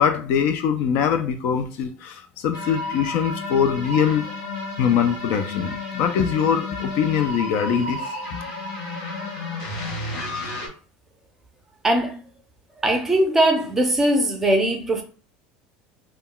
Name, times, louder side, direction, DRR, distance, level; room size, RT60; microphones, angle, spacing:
voice 1, 0.0-4.3 4.8-8.3, left 7 dB, 50° left, 0.3 m, -22 dB
sound 1, 2.5-10.7, left 2 dB, 85° left, 1.2 m, -32 dB
voice 2, 11.8-12.2 12.8-15.0, right 1 dB, 10° right, 0.5 m, -20 dB
2.2 x 2.1 x 3.7 m
cardioid pair, 170°, 4 cm